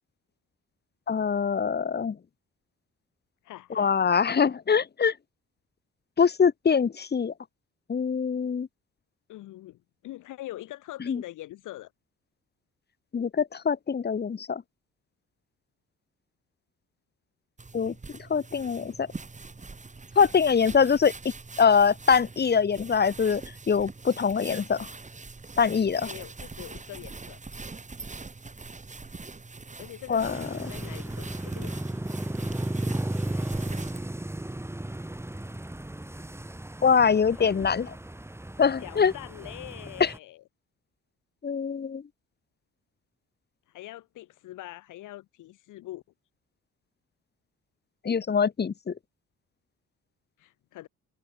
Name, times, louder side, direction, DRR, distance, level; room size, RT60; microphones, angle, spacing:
voice 1, 1.1-2.2 3.8-5.1 6.2-7.3 7.9-8.7 11.1-11.2 13.1-14.6 17.7-17.9 18.3-19.1 20.2-21.1 21.6-23.4 23.7-24.8 25.6-26.1 30.1-30.4 36.8-37.9 38.6-39.1 40.0-40.1 41.4-42.0 48.0-48.9, left 6 dB, 35° left, 1.3 m, -23 dB
voice 2, 3.4-3.9 9.3-11.9 24.5-24.7 26.0-27.4 29.8-32.0 36.9-37.5 38.8-40.4 43.7-46.0 50.4-50.9, left 15 dB, 90° left, 5.4 m, -43 dB
sound 1, 17.6-34.1, right 3 dB, 25° right, 5.1 m, -43 dB
sound 2, 30.2-40.2, right 1 dB, 10° right, 4.9 m, -35 dB
cardioid pair, 90°, 30 cm